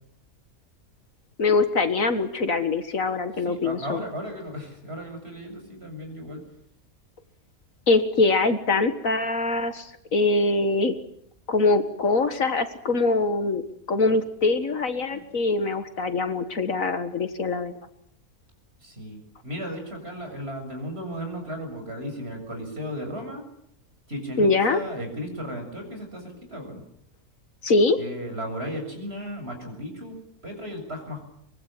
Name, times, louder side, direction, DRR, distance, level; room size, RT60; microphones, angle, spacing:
voice 1, 1.4-4.0 7.9-10.9 11.5-13.6 13.9-17.7 24.4-24.8 27.6-28.0, left 3 dB, 60° left, 10 dB, 2.0 m, -23 dB
voice 2, 3.4-6.4 15.1-15.2 18.8-23.5 24.1-26.8 28.0-31.2, equal, 40° right, 4 dB, 7.6 m, -35 dB
24.5 x 23.0 x 9.1 m, 0.71 s
omnidirectional pair, 1.6 m